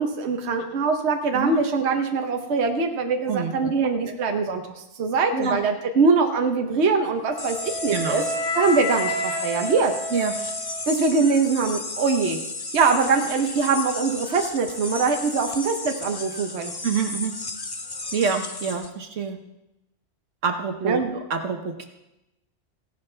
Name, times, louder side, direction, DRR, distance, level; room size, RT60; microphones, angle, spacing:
voice 1, 0.0-8.2 8.5-9.9 10.9-12.4 12.7-16.7 20.8-21.1, right 4 dB, 65° right, 4 dB, 1.2 m, -23 dB
voice 2, 3.3-3.7 4.1-4.2 5.3-5.6 7.9-8.2 10.1-10.4 16.8-17.4 18.1-19.4 20.4-21.0 21.3-21.8, right 5 dB, 85° right, 5 dB, 1.4 m, -26 dB
Wind instrument woodwind instrument, 7.2-11.3, left 1 dB, 45° left, 2.5 m, -30 dB
sound 1, 7.4-18.9, left 3 dB, 25° left, 0.6 m, -34 dB
16.0 x 11.0 x 3.3 m, 0.92 s
omnidirectional pair, 1.2 m